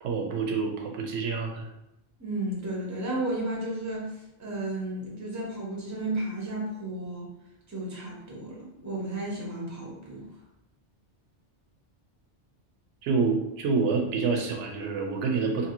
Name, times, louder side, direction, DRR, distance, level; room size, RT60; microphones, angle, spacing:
voice 1, 0.0-1.7 13.0-15.7, right 4 dB, 80° right, 2 dB, 0.9 m, -27 dB
voice 2, 2.2-7.3 7.7-10.3, right 1 dB, 20° right, -3 dB, 0.7 m, -33 dB
2.7 x 2.6 x 2.9 m, 0.86 s
omnidirectional pair, 1.2 m